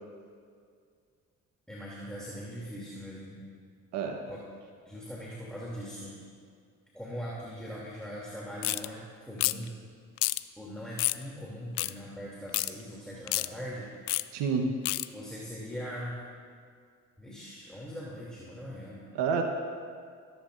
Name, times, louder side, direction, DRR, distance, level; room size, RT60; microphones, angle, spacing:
voice 1, 1.7-3.4 4.3-4.4 4.8-6.2 6.9-9.8 10.6-13.9 15.1-16.2 17.2-19.0, equal, ahead, -6 dB, 3.0 m, -41 dB
sound 1, 8.6-8.9 9.4-9.7 10.2-10.4 11.0-11.2 11.8-11.9 12.5-12.7 13.3-13.5 14.1-14.2 14.9-15.1, left 21 dB, 70° left, 0.5 m, -28 dB
voice 2, 14.3-14.7 19.1-19.4, right 5 dB, 70° right, 3 dB, 1.2 m, -28 dB
21.0 x 10.5 x 2.6 m, 2.2 s
hypercardioid pair, 50°, 43 cm